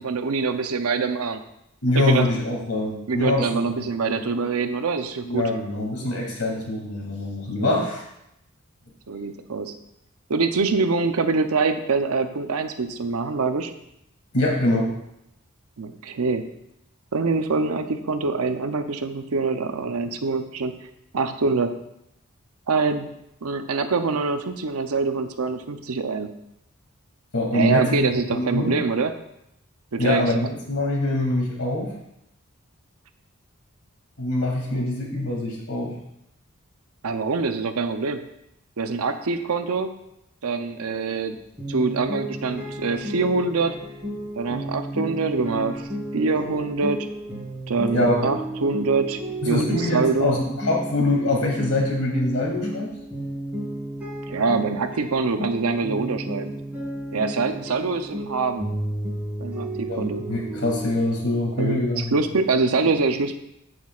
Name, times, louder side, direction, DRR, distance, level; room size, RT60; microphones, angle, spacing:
voice 1, 0.0-1.4 1.9-2.3 3.1-5.5 7.6-7.9 9.1-9.8 10.3-13.7 15.8-16.4 17.1-20.7 21.1-21.8 22.7-23.1 23.4-26.3 27.5-29.1 29.9-30.2 37.0-38.2 38.8-39.9 40.4-41.4 41.7-43.8 44.4-47.1 47.7-49.2 49.5-50.3 54.3-56.5 57.1-58.7 59.4-60.2 61.6-63.3, right 4 dB, 80° right, 8 dB, 0.7 m, -24 dB
voice 2, 1.8-4.2 5.2-8.0 14.3-14.9 27.3-28.7 30.0-31.9 34.2-36.0 47.9-48.3 49.4-52.9 59.9-62.1, left 2 dB, 85° left, -1 dB, 2.6 m, -24 dB
sound 1, 41.6-60.9, right 1 dB, 5° right, 3.7 m, -33 dB
14.5 x 6.2 x 2.4 m, 0.83 s
head